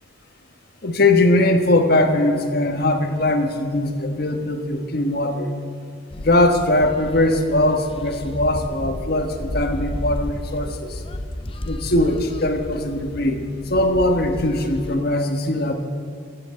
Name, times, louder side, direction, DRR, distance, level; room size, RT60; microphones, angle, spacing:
voice 1, 0.8-5.5 6.2-11.0 11.6-13.4 13.7-15.7, left 1 dB, 55° left, 6 dB, 1.2 m, -20 dB
sound 1, 6.1-14.9, left 1 dB, 30° left, 0.6 m, -32 dB
14.5 x 8.0 x 7.1 m, 2.4 s
head